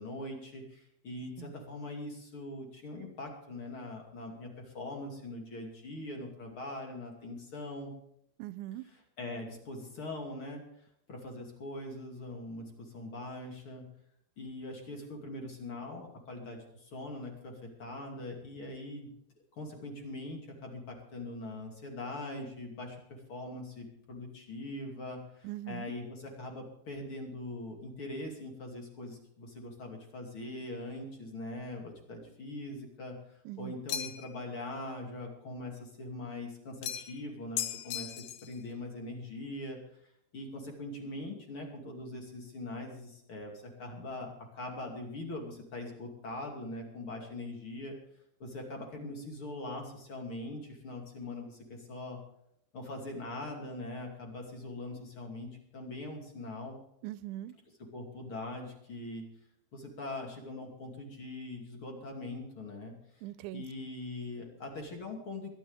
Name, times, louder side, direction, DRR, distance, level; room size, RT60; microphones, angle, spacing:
voice 1, 0.0-7.9 8.8-10.6 11.1-13.9 14.4-19.1 19.6-33.2 33.6-39.8 40.3-48.0 48.4-52.2 52.7-56.8 57.8-59.3 59.7-62.9 63.5-65.5, left 2 dB, 35° left, 2.8 m, -42 dB
voice 2, 8.4-8.8 25.4-25.9 33.5-33.8 57.0-57.5 63.2-63.6, right 15 dB, 90° right, 3.0 m, -41 dB
sound 1, 33.9-34.4 36.8-37.2 37.6-38.5, left 11 dB, 75° left, 2.2 m, -37 dB
22.5 x 11.5 x 3.5 m
omnidirectional pair, 5.2 m